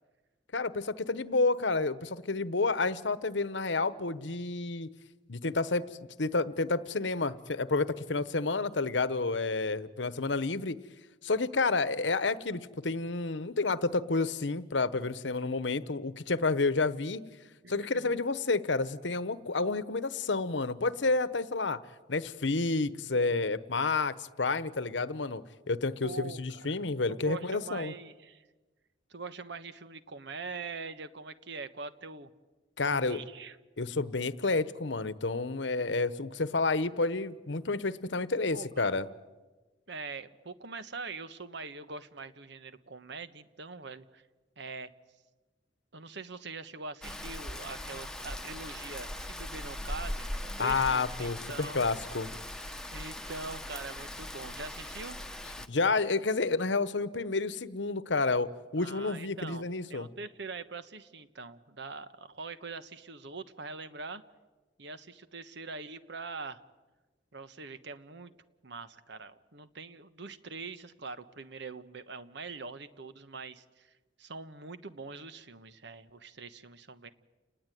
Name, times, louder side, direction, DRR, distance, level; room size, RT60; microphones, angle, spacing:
voice 1, 0.5-4.9 5.3-5.8 6.2-10.8 11.2-17.2 17.7-21.8 22.1-27.9 32.8-33.2 33.8-39.1 50.6-52.3 55.7-60.1, left 3 dB, 70° left, 15 dB, 1.1 m, -30 dB
voice 2, 17.6-18.2 26.0-26.7 27.1-28.5 29.1-32.3 32.8-33.6 38.4-39.0 39.9-44.2 44.6-44.9 45.9-51.9 52.9-55.2 58.8-64.2 64.8-66.6 67.3-68.3 68.6-73.9 74.2-77.1, right 4 dB, 70° right, 12 dB, 1.3 m, -43 dB
Rain, 47.0-55.7, left 1 dB, 5° left, 1.2 m, -40 dB
30.0 x 19.5 x 9.3 m, 1.3 s
head